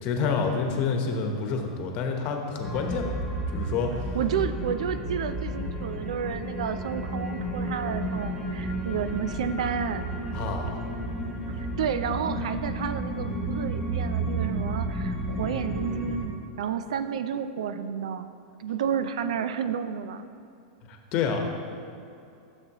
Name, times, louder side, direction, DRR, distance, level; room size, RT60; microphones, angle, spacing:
voice 1, 0.0-3.2 3.5-4.2 10.3-10.8 20.9-21.4, left 5 dB, 40° left, 3 dB, 1.1 m, -28 dB
sound 1, 2.6-16.3, right 1 dB, 5° left, 0.9 m, -32 dB
voice 2, 4.1-10.1 11.5-18.3 18.6-20.2, right 8 dB, 80° right, 11 dB, 0.5 m, -31 dB
13.5 x 7.1 x 3.0 m, 2.5 s
supercardioid pair, 155°, 3 cm